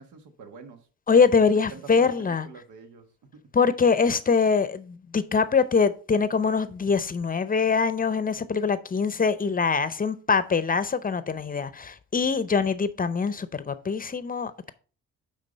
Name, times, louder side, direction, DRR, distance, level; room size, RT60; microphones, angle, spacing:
voice 1, 0.0-3.4, right 5 dB, 80° right, 1.3 m, -46 dB
voice 2, 1.1-2.5 3.5-14.7, left 5 dB, 30° left, 0.6 m, -23 dB
9.0 x 3.7 x 5.1 m
cardioid pair, 90°, 30 cm